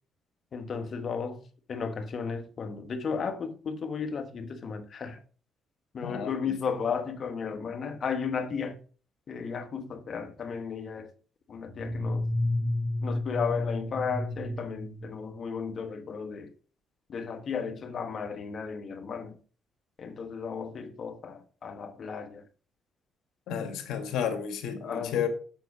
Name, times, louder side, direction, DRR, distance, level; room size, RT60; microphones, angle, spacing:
voice 1, 0.5-1.4 1.7-5.2 5.9-8.8 9.3-11.1 11.5-12.3 13.0-16.5 17.1-19.4 20.0-22.4 24.8-25.3, left 6 dB, 50° left, 1.3 m, -34 dB
voice 2, 6.0-6.5 23.5-25.3, left 8 dB, 85° left, 1.8 m, -32 dB
sound 1, 11.6-15.7, left 1 dB, 25° left, 2.9 m, -31 dB
7.8 x 5.8 x 4.9 m
cardioid pair, 90°, 0 cm